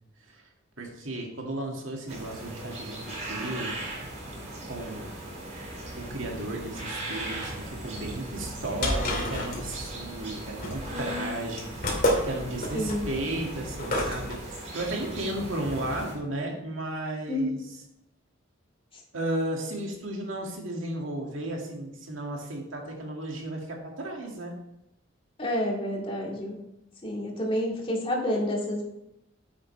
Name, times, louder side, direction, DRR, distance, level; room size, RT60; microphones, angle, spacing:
voice 1, 0.8-3.8 4.2-4.3 4.6-5.2 5.9-17.6 19.1-24.6, right 1 dB, 75° right, 0 dB, 2.1 m, -34 dB
sound 1, 2.1-16.1, right 1 dB, 35° right, 3.3 m, -38 dB
sound 2, 8.5-14.3, left 1 dB, 45° left, 2.5 m, -30 dB
voice 2, 10.9-11.3 12.7-13.1 17.3-17.4 25.4-26.6 27.0-28.8, left 1 dB, 30° left, -2 dB, 2.3 m, -29 dB
9.6 x 7.7 x 3.3 m, 0.86 s
head